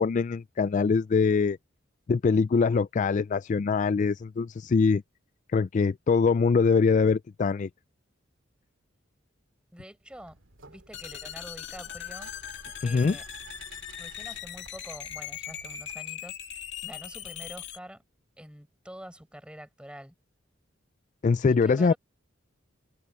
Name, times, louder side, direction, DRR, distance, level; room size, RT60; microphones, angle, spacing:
voice 1, 0.0-1.6 2.1-5.0 5.5-7.7 12.8-13.2 21.2-21.9, left 5 dB, 40° left, 0.3 m, -23 dB
voice 2, 9.7-10.4 10.7-12.3 12.6-13.3 14.0-18.0 18.4-20.2 21.5-22.0, equal, 5° right, 7.0 m, -46 dB
sound 1, 10.1-16.0, right 4 dB, 80° right, 2.4 m, -53 dB
sound 2, 10.9-17.8, left 9 dB, 65° left, 2.3 m, -40 dB
head